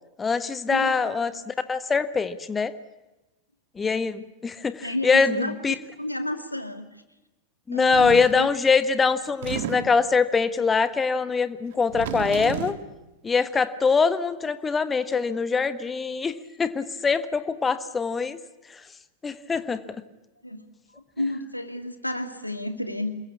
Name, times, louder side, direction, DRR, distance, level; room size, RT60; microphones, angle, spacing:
voice 1, 0.2-2.7 3.8-5.7 7.7-12.8 13.2-18.4 18.7-18.8 19.2-19.8, left 5 dB, 15° left, 13 dB, 1.5 m, -23 dB
voice 2, 4.8-6.9 7.7-8.5 20.4-20.7 20.9-23.1, left 1 dB, 90° left, 8 dB, 2.4 m, -31 dB
sound 1, 7.9-8.4 9.3-10.1 11.7-12.9, right 10 dB, 55° right, 1.8 m, -33 dB
27.5 x 22.0 x 8.5 m, 1.0 s
figure-of-eight pair, 90°, 0 cm